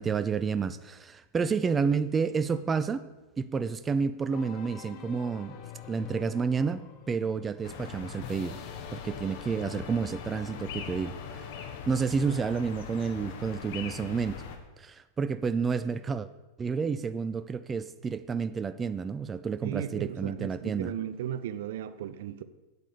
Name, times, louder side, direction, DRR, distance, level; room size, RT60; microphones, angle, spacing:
voice 1, 0.0-3.1 3.4-5.6 5.9-8.6 8.9-11.5 11.9-14.4 14.8-16.3 16.6-20.9, right 5 dB, 20° right, 13 dB, 0.5 m, -30 dB
sound 1, 4.3-11.8, left 7 dB, 45° left, 1.2 m, -47 dB
sound 2, 7.6-14.6, left 6 dB, 60° left, 1.5 m, -41 dB
voice 2, 19.6-22.4, right 10 dB, 65° right, 13 dB, 0.7 m, -35 dB
8.3 x 8.2 x 6.8 m, 1.1 s
hypercardioid pair, 100°, 0 cm